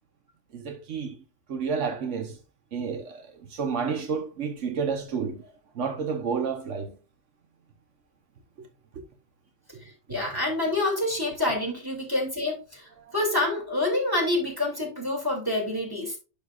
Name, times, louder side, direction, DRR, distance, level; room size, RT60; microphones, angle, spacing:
voice 1, 0.5-1.2 1.5-2.4 2.7-3.2 3.5-5.5 5.7-7.0, right 6 dB, 85° right, 1.3 m, -30 dB
voice 2, 10.1-12.8 13.1-16.2, left 2 dB, 20° right, 2.8 m, -27 dB
11.0 x 5.2 x 2.4 m
omnidirectional pair, 1.2 m